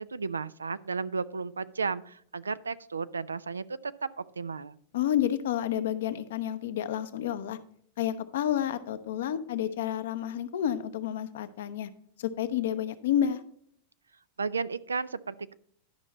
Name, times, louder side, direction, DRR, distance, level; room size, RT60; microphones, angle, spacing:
voice 1, 0.0-4.8 14.4-15.5, right 4 dB, 85° right, 17 dB, 0.3 m, -34 dB
voice 2, 4.9-7.6 8.0-11.9 12.2-13.4, left 10 dB, 70° left, 11 dB, 0.7 m, -30 dB
11.5 x 5.4 x 4.1 m, 0.63 s
hypercardioid pair, 95°, 0 cm